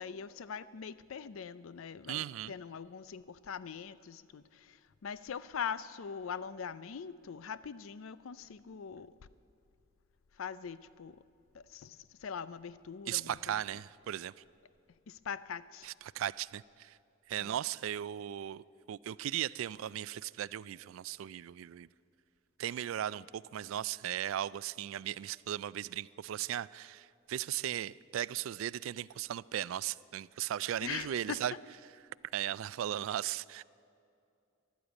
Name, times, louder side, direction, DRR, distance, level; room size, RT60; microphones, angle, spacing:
voice 1, 0.0-9.2 10.3-11.2 11.5-13.6 15.1-15.9 17.4-17.5 30.8-31.4, left 7 dB, 75° left, 0.5 m, -42 dB
voice 2, 2.1-2.5 13.1-14.4 15.8-17.0 17.3-21.9 22.6-31.5 32.3-33.6, right 11 dB, 70° right, 0.3 m, -37 dB
13.5 x 11.5 x 8.2 m
head